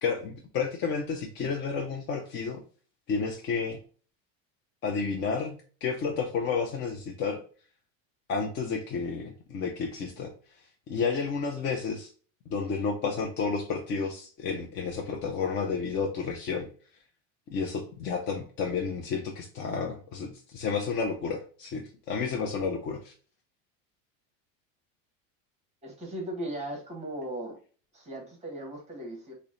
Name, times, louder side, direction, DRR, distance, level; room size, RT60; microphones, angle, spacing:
voice 1, 0.0-2.6 3.1-3.8 4.8-7.4 8.3-10.3 10.9-12.1 12.5-16.7 17.5-23.1, left 5 dB, 30° left, 2 dB, 0.4 m, -31 dB
voice 2, 25.8-27.6 27.9-29.3, right 1 dB, 15° right, 0 dB, 1.0 m, -37 dB
3.9 x 2.1 x 3.6 m, 0.41 s
cardioid pair, 150°, 38 cm